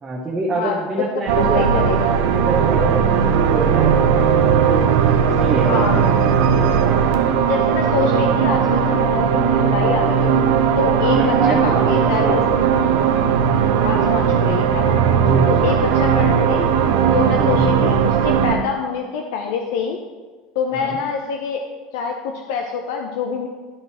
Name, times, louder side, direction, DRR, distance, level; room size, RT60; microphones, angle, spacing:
voice 1, 0.0-4.6 5.3-6.1 6.8-7.1 11.0-12.7 15.2-15.7 17.3-17.7 20.7-21.0, right 2 dB, 20° right, -5 dB, 1.2 m, -26 dB
voice 2, 0.5-1.1 1.4-2.1 5.7-6.0 7.5-10.4 10.8-12.5 13.8-15.0 15.5-16.7 17.1-20.0 20.5-21.6 21.9-23.5, left 6 dB, 75° left, 3 dB, 0.7 m, -25 dB
sound 1, 1.3-18.6, right 7 dB, 75° right, 0.7 m, -17 dB
11.5 x 4.0 x 4.3 m, 1.4 s
supercardioid pair, 125°, 0 cm